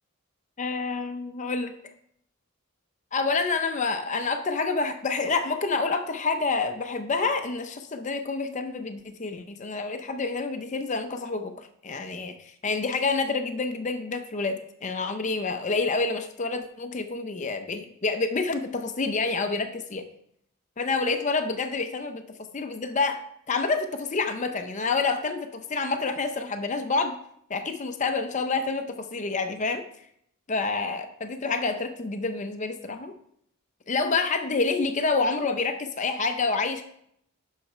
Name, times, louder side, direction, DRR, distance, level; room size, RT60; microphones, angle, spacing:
voice 1, 0.6-1.7 3.1-20.0 20.8-22.2 22.5-23.2 23.5-27.2 27.5-29.8 30.5-33.1 33.9-36.8, left 4 dB, 35° left, 7 dB, 0.5 m, -28 dB
7.5 x 6.4 x 4.9 m, 0.72 s
head